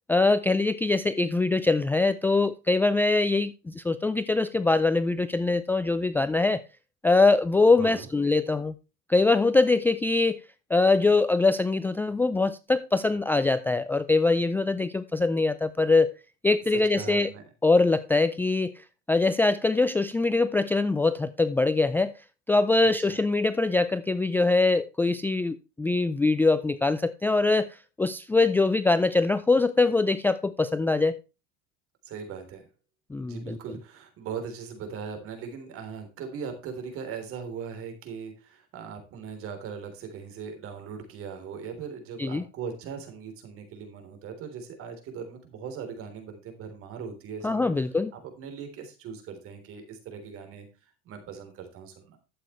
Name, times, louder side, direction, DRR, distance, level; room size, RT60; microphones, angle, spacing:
voice 1, 0.1-6.6 7.0-8.7 9.1-10.4 10.7-16.2 16.4-17.3 17.6-22.1 22.5-31.2 33.1-33.6 42.2-42.4 47.4-48.1, left 3 dB, 5° left, 0.4 m, -23 dB
voice 2, 7.8-8.1 16.7-17.4 23.0-23.2 32.0-32.7 33.2-47.7 48.1-52.2, right 6 dB, 50° right, 3.7 m, -39 dB
12.0 x 8.3 x 3.2 m
cardioid pair, 135°, 29 cm